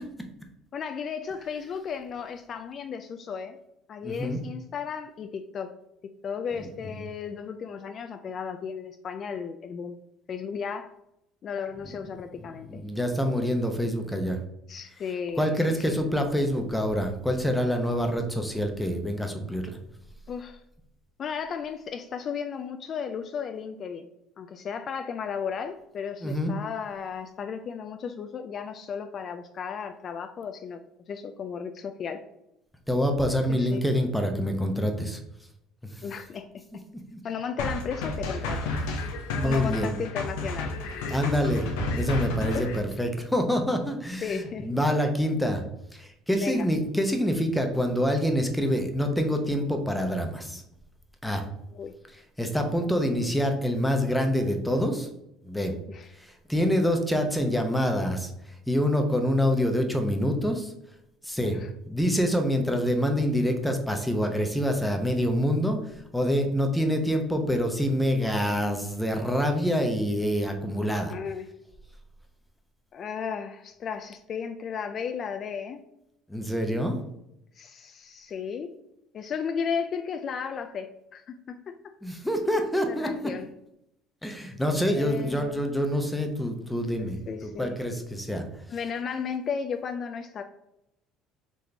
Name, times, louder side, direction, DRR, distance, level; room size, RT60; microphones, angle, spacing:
voice 1, 0.7-3.6 3.9-5.7 6.2-10.0 10.3-10.9 11.4-12.8 14.7-16.0 20.3-20.6 21.2-24.1 24.4-30.8 31.1-32.2 33.5-33.8 36.0-36.6 37.2-38.7 39.4-40.7 42.5-42.7 44.2-44.8 46.4-46.7 51.7-51.9 55.9-56.1 61.5-61.7 71.1-71.5 72.9-75.8 77.6-78.7 79.1-81.7 82.9-83.5 84.9-85.6 87.0-87.8 88.7-90.4, left 6 dB, 45° left, 7 dB, 0.3 m, -34 dB
voice 2, 4.0-4.4 6.6-6.7 12.7-14.4 15.4-19.8 26.2-26.5 32.9-35.2 37.1-37.2 39.3-39.9 41.1-45.6 45.9-50.6 51.2-51.4 52.4-55.1 55.4-55.7 56.2-58.3 58.7-60.7 61.2-61.6 61.9-65.8 66.1-71.1 76.3-77.0 82.0-83.3 84.2-88.4, equal, 5° left, 4 dB, 0.7 m, -26 dB
sound 1, 37.6-42.8, left 2 dB, 85° left, 0.7 m, -31 dB
4.0 x 3.1 x 3.3 m, 0.82 s
supercardioid pair, 85°, 0 cm